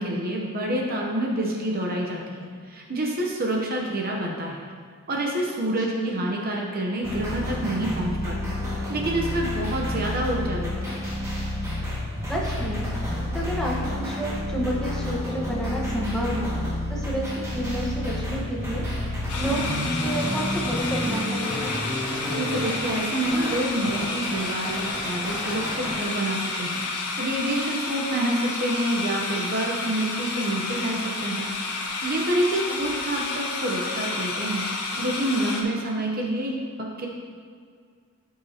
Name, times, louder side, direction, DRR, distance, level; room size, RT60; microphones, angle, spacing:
voice 1, 0.0-2.4 2.7-4.6 5.1-11.0 22.3-31.5 31.9-37.1, right 1 dB, 40° right, -1 dB, 0.8 m, -28 dB
voice 2, 5.7-6.2 12.3-18.8 19.4-19.6 20.0-21.7 32.7-32.8, right 1 dB, 5° left, -4 dB, 1.2 m, -30 dB
sound 1, 7.0-26.0, left 1 dB, 15° right, 1.9 m, -30 dB
sound 2, 19.3-35.6, left 3 dB, 85° left, 1.3 m, -31 dB
13.0 x 5.6 x 2.9 m, 2.1 s
head